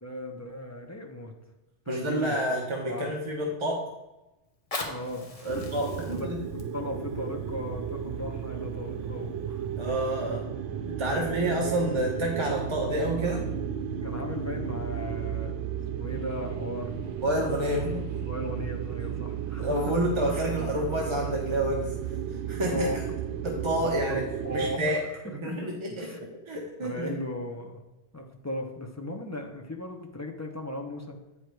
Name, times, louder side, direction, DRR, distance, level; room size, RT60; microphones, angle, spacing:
voice 1, 0.0-1.3 1.9-2.3 2.9-3.1 4.8-5.6 6.1-6.3 6.7-9.6 11.1-11.4 14.0-16.9 18.3-19.9 22.7-23.0 23.8-25.0 25.4-26.2 26.8-27.8 28.1-31.2, left 1 dB, 15° left, 2 dB, 0.6 m, -37 dB
voice 2, 1.9-3.8 5.4-6.4 9.8-10.5 10.8-13.5 17.2-18.1 19.6-21.9 22.3-23.0 23.4-24.2 24.5-27.2, right 1 dB, 25° right, -1 dB, 0.8 m, -29 dB
Fire, 4.4-9.4 10.1-10.2, left 2 dB, 35° left, 0.9 m, -42 dB
sound 1, 5.5-24.8, right 8 dB, 80° right, 0.9 m, -34 dB
sound 2, 16.1-22.3, right 3 dB, 55° right, 1.3 m, -45 dB
8.5 x 4.8 x 4.6 m, 1.0 s
omnidirectional pair, 1.2 m